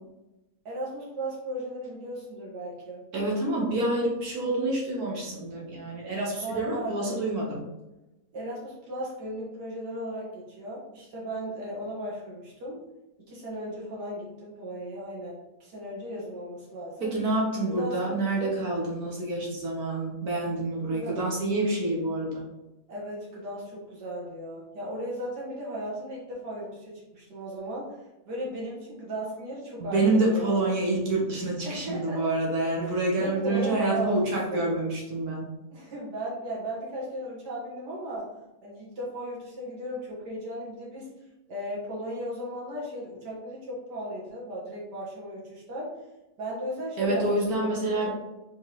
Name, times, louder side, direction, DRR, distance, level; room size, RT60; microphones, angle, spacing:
voice 1, 0.7-3.0 6.3-7.2 8.3-12.8 13.3-17.1 17.7-18.5 20.9-21.2 22.9-27.9 28.3-30.7 31.6-32.2 32.8-34.7 35.7-38.3 38.6-41.1 41.5-45.9 46.4-47.7 47.9-48.1, equal, 85° right, -5 dB, 2.1 m, -36 dB
voice 2, 3.1-7.6 17.0-22.4 29.8-35.4 47.0-48.1, right 2 dB, 65° right, -2 dB, 1.5 m, -27 dB
4.6 x 3.5 x 3.0 m, 0.99 s
omnidirectional pair, 1.7 m